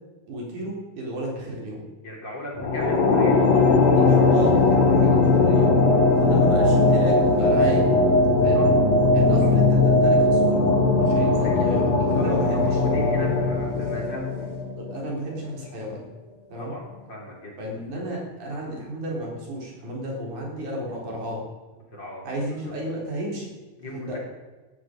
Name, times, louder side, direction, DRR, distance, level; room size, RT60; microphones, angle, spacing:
voice 1, 0.3-1.8 3.9-5.7 6.2-7.9 8.4-8.6 9.1-10.6 11.0-12.8 13.8-14.0 14.7-16.0 16.5-16.7 17.6-21.4 22.2-23.5 23.9-24.2, right 1 dB, 70° right, -2 dB, 5.3 m, -32 dB
voice 2, 2.0-3.4 8.5-8.8 11.4-11.8 12.2-14.6 16.6-16.8 17.1-17.6 21.9-22.2 22.6-22.7 23.8-24.2, left 1 dB, 35° left, -2 dB, 3.9 m, -37 dB
sound 1, 2.6-15.1, left 3 dB, 60° left, 2.9 m, -19 dB
18.0 x 11.5 x 5.2 m, 1.3 s
omnidirectional pair, 3.5 m